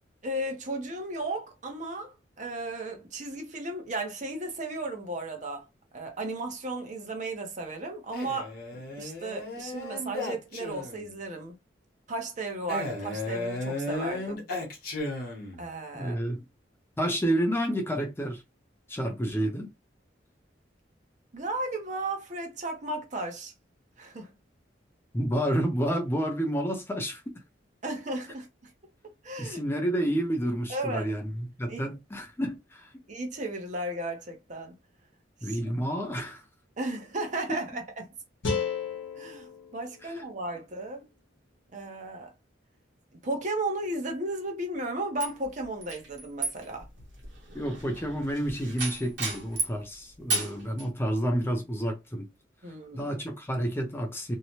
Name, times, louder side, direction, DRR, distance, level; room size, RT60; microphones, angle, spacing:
voice 1, 0.2-5.6 5.9-11.6 12.1-14.4 15.6-16.2 21.3-23.5 24.0-24.3 27.8-28.5 29.2-29.6 30.7-31.1 31.7-31.8 33.1-34.7 35.4-35.6 36.8-38.1 39.2-41.0 41.7-42.3 43.2-46.9 50.3-50.4 52.6-53.1, right 2 dB, 40° right, 0.7 m, -35 dB
Male speech man speaking, 8.1-11.1 12.7-15.7, left 2 dB, 55° left, 0.9 m, -35 dB
voice 2, 15.9-16.5 17.0-18.4 18.9-19.7 25.1-27.2 29.4-32.9 35.4-36.4 40.0-40.2 47.5-52.3 52.9-54.4, equal, 15° left, 0.4 m, -29 dB
sound 1, 38.4-41.5, left 5 dB, 85° left, 0.8 m, -35 dB
sound 2, 45.2-49.8 50.3-50.9, right 3 dB, 85° right, 1.1 m, -34 dB
2.7 x 2.1 x 2.9 m
head